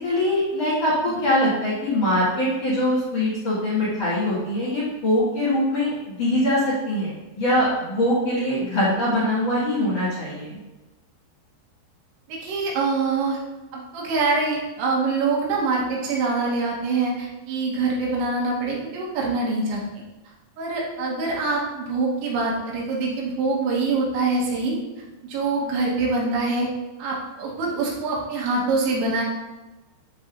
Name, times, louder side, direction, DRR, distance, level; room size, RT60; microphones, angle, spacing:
voice 1, 0.0-10.6, left 1 dB, 45° left, -8 dB, 2.4 m, -23 dB
voice 2, 12.3-13.4 13.7-20.0 20.6-24.8 25.2-26.7 27.0-29.2, right 3 dB, 80° right, -3 dB, 3.6 m, -24 dB
11.5 x 4.0 x 2.6 m, 1.1 s
omnidirectional pair, 5.3 m